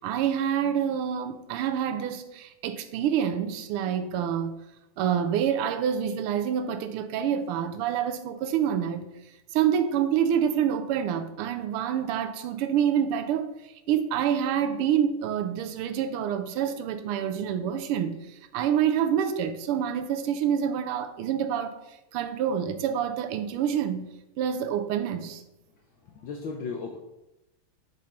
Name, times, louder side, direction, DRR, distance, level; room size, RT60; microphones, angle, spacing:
voice 1, 0.0-4.5 5.0-9.1 9.5-13.5 13.9-18.2 18.5-21.8 22.1-24.1 24.4-25.4, right 9 dB, 85° right, 1.5 m, -27 dB
voice 2, 26.0-27.0, left 4 dB, 70° left, 1.4 m, -36 dB
6.2 x 5.4 x 4.2 m
omnidirectional pair, 2.4 m